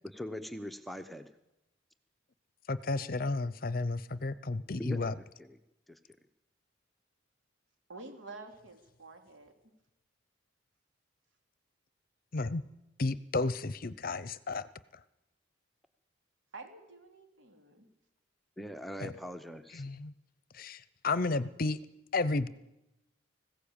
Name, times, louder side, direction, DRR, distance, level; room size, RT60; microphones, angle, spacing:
voice 1, 0.0-1.3 4.8-5.6 5.9-6.0 18.6-19.8, equal, ahead, 7 dB, 0.8 m, -41 dB
voice 2, 2.7-5.1 12.3-12.6 13.0-14.7 19.0-19.1 19.7-20.1 20.5-21.8 22.1-22.5, left 3 dB, 45° left, 16 dB, 0.7 m, -32 dB
voice 3, 7.9-9.5 16.5-17.9, right 3 dB, 75° right, 4 dB, 3.1 m, -49 dB
20.0 x 16.0 x 8.8 m, 0.93 s
head